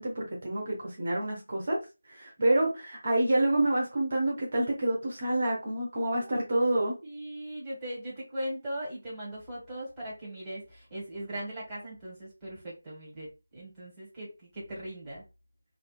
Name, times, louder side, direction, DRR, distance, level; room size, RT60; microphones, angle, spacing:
voice 1, 0.0-1.8 2.1-6.9, right 1 dB, 40° right, -2 dB, 0.8 m, -28 dB
voice 2, 7.0-15.2, right 1 dB, 15° right, -7 dB, 1.0 m, -39 dB
2.7 x 2.2 x 2.2 m, 0.28 s
figure-of-eight pair, 160°, 0 cm